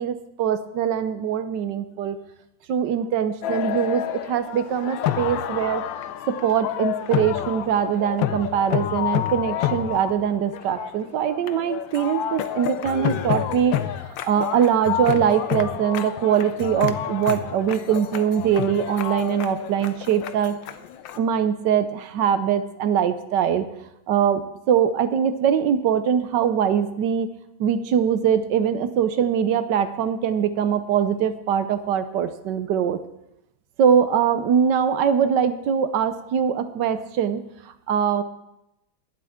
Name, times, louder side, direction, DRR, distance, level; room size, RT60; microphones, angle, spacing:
voice 1, 0.0-2.2 2.7-5.8 6.3-13.7 14.2-20.5 21.2-23.7 24.1-27.3 27.6-33.0 33.8-37.4 37.9-38.2, right 8 dB, 65° right, 11 dB, 1.3 m, -22 dB
sound 1, 3.4-21.2, left 11 dB, 75° left, 1.4 m, -29 dB
23.5 x 7.8 x 3.6 m, 0.86 s
omnidirectional pair, 2.2 m